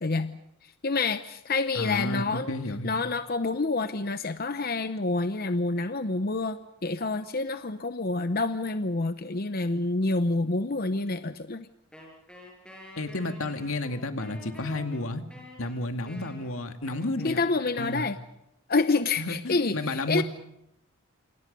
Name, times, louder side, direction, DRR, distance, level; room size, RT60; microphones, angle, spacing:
voice 1, 0.0-2.5 2.8-11.7 17.2-18.2 18.7-20.2, left 3 dB, 45° left, 10 dB, 0.8 m, -28 dB
voice 2, 1.7-3.0 13.0-15.2 15.6-17.4 17.8-18.1 19.2-20.2, left 2 dB, 85° left, 6 dB, 2.2 m, -31 dB
Wind instrument woodwind instrument, 11.9-18.2, left 1 dB, 5° left, 6.8 m, -48 dB
28.0 x 27.5 x 5.4 m, 0.82 s
head